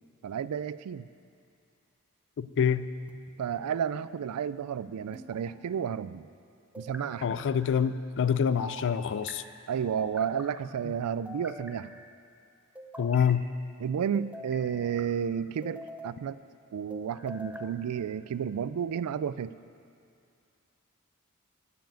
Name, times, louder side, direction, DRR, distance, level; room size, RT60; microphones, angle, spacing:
voice 1, 0.2-1.1 3.4-6.3 6.8-7.4 9.7-12.0 13.8-16.4 16.7-19.6, right 8 dB, 85° right, 16 dB, 0.4 m, -32 dB
voice 2, 2.4-2.9 7.2-9.4 13.0-13.4, left 7 dB, 55° left, 14 dB, 0.4 m, -26 dB
sound 1, 3.1-3.8 5.1-5.9 6.7-7.5 8.6-9.4 10.0-10.6 11.3-12.1 12.8-13.4 14.1-15.1 15.6-16.2 16.9-17.7, equal, 5° right, 0.6 m, -45 dB
10.5 x 7.0 x 9.1 m, 2.4 s
head